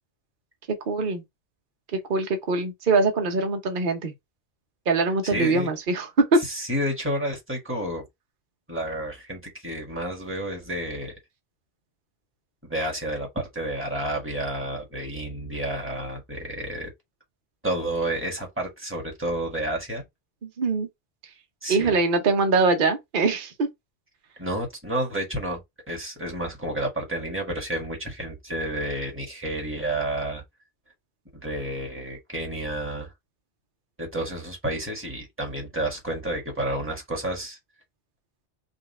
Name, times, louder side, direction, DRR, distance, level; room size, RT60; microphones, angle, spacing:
voice 1, 0.9-1.2 1.9-4.1 4.9-6.4 20.4-20.9 21.7-23.7, right 3 dB, 50° right, 1.0 m, -23 dB
voice 2, 5.2-5.7 6.4-8.0 8.7-11.2 12.6-16.9 17.6-20.0 21.6-22.0 24.4-25.6 25.9-30.4 31.3-33.1 34.0-37.6, right 1 dB, 10° right, 1.6 m, -30 dB
3.9 x 2.4 x 4.1 m
omnidirectional pair, 1.1 m